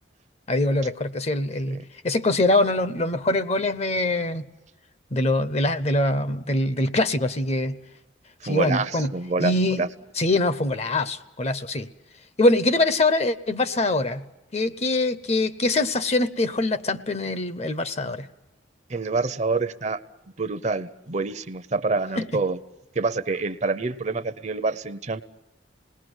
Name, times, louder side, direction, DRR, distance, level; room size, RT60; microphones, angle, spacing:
voice 1, 0.5-4.4 5.1-7.8 8.4-9.1 9.4-9.8 10.2-11.9 12.4-14.2 14.5-18.3 22.2-22.3, left 2 dB, 35° left, 13 dB, 0.8 m, -23 dB
voice 2, 8.4-9.9 18.9-20.0 20.4-22.6 22.9-25.2, right 3 dB, 40° right, 12 dB, 0.8 m, -27 dB
27.5 x 20.0 x 8.1 m, 1.1 s
head